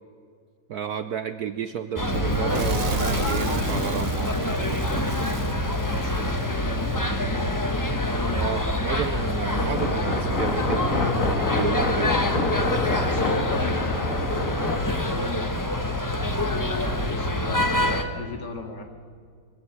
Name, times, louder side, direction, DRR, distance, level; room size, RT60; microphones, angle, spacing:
voice 1, 0.7-4.6 6.2-6.3 8.3-11.2 11.5-12.2, right 8 dB, 65° right, 11 dB, 1.0 m, -32 dB
sound 1, 2.0-18.0, left 1 dB, 10° left, 1.0 m, -26 dB
Fire / Explosion, 2.1-6.9, right 3 dB, 45° right, 1.9 m, -32 dB
voice 2, 5.4-7.4 13.0-15.6 16.0-17.7 18.1-18.8, left 3 dB, 60° left, 4 dB, 2.9 m, -38 dB
sound 2, 9.6-14.8, left 2 dB, 40° left, 2.2 m, -27 dB
23.0 x 16.0 x 8.1 m, 2.2 s
omnidirectional pair, 2.2 m